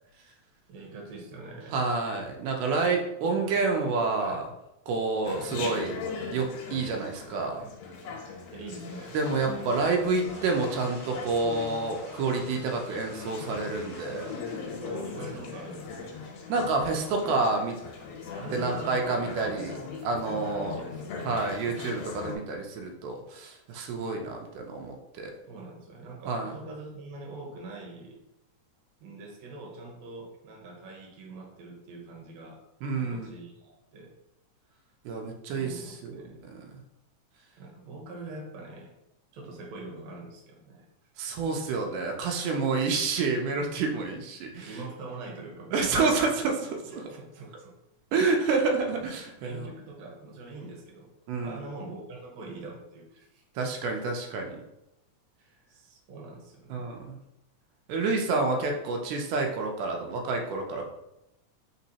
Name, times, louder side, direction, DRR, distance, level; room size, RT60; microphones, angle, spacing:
voice 1, 0.7-1.9 3.2-3.6 4.2-4.5 8.5-9.2 14.8-16.2 18.3-19.0 20.4-21.0 25.5-28.2 29.0-32.6 32.9-34.1 35.5-36.4 37.6-38.9 39.3-40.9 42.2-42.6 43.9-44.1 44.7-46.2 47.1-47.7 49.4-51.1 51.4-53.4 55.7-56.9, right 3 dB, 70° right, -2 dB, 2.0 m, -43 dB
voice 2, 1.7-4.4 4.9-5.9 6.3-7.6 9.1-14.3 16.5-17.8 18.5-20.8 21.3-25.3 26.3-26.5 32.8-33.3 35.1-36.8 41.2-44.8 45.7-47.0 48.1-49.7 51.3-51.6 53.6-54.6 56.7-57.2 57.9-60.9, right 3 dB, 85° right, 2 dB, 2.1 m, -29 dB
Chatter, 5.2-22.4, left 5 dB, 80° left, 2.2 m, -40 dB
sound 1, 9.3-19.8, left 2 dB, 55° left, 1.1 m, -50 dB
4.3 x 4.0 x 2.8 m, 0.89 s
omnidirectional pair, 3.6 m